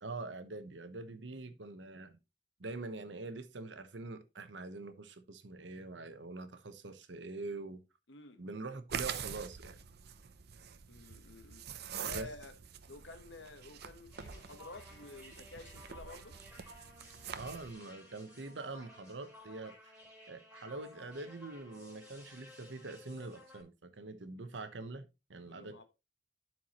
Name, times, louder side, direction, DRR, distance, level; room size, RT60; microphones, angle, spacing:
voice 1, 0.0-2.2 2.6-7.8 8.4-9.8 12.1-12.3 17.3-20.0 20.3-25.8, right 3 dB, 80° right, 1.0 m, -44 dB
voice 2, 8.1-8.4 10.9-11.7 12.0-12.5 12.9-16.4 25.5-25.8, left 3 dB, 85° left, 1.2 m, -51 dB
sound 1, 8.9-17.7, right 8 dB, 60° right, 0.6 m, -45 dB
sound 2, 14.1-23.6, left 1 dB, 5° right, 4.0 m, -56 dB
11.5 x 4.7 x 3.0 m
head